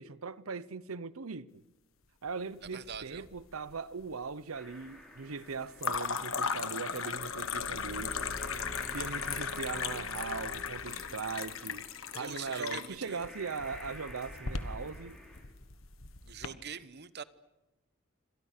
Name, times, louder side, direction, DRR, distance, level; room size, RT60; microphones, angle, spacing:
voice 1, 0.0-1.6 2.2-8.2 8.9-15.2, right 5 dB, 90° right, 0.8 m, -40 dB
sound 1, 2.6-3.4 3.7-4.3 5.8-16.5, left 6 dB, 70° left, 1.5 m, -37 dB
voice 2, 2.7-3.2 12.1-13.2 16.2-17.2, right 7 dB, 55° right, 1.1 m, -43 dB
sound 2, 4.5-15.4, left 1 dB, 5° left, 6.6 m, -53 dB
Car / Engine, 7.1-11.6, equal, 40° right, 2.7 m, -47 dB
28.0 x 26.0 x 6.7 m
head